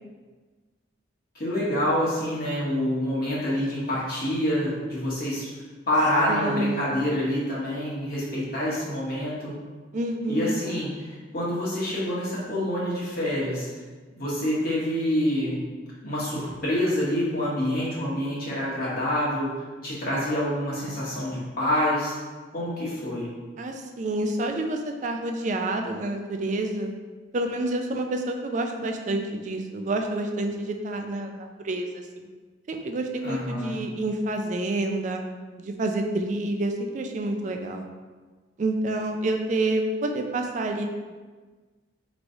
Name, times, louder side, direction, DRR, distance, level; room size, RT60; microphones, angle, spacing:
voice 1, 1.3-5.5 5.9-9.5 10.3-13.7 14.1-15.6 16.0-19.5 19.8-22.1 22.5-23.3 33.2-33.8, left 1 dB, 50° left, -8 dB, 1.1 m, -27 dB
voice 2, 6.3-6.9 9.9-10.6 23.6-26.9 27.3-32.3 32.7-35.2 35.6-37.8 38.6-40.9, right 2 dB, 40° right, 4 dB, 0.3 m, -28 dB
4.6 x 3.0 x 2.6 m, 1.4 s
head